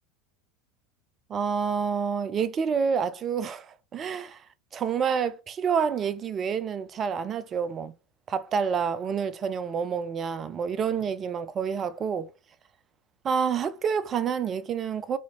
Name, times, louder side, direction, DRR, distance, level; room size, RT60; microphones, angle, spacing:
voice 1, 1.3-4.4 4.7-7.9 8.3-12.3 13.2-15.2, right 6 dB, 30° right, 0.5 m, -28 dB
4.1 x 2.8 x 3.1 m
figure-of-eight pair, 75°, 0 cm